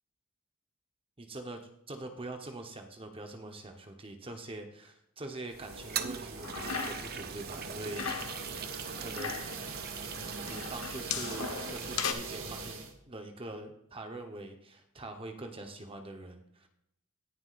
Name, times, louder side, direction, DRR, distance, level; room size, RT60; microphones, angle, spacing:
voice 1, 1.2-8.1 9.0-9.5 10.5-12.8 13.1-16.7, right 2 dB, 25° right, 5 dB, 1.0 m, -43 dB
sound 1, 5.5-12.9, right 4 dB, 75° right, 1.9 m, -42 dB
Toilet flush, 5.7-12.1, right 7 dB, 45° right, 0.7 m, -42 dB
sound 2, 6.4-7.2 7.5-8.4 8.9-9.6 10.5-12.1, left 7 dB, 90° left, 1.1 m, -37 dB
18.5 x 7.0 x 2.5 m, 0.78 s
head